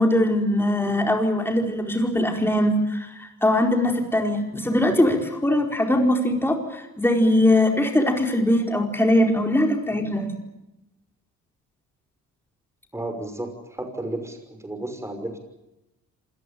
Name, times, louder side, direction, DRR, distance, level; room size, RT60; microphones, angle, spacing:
voice 1, 0.0-10.3, left 1 dB, 5° left, 2 dB, 4.6 m, -21 dB
voice 2, 12.9-15.4, right 1 dB, 10° right, 5 dB, 5.9 m, -33 dB
26.5 x 19.0 x 8.6 m, 0.92 s
cardioid pair, 90°, 30 cm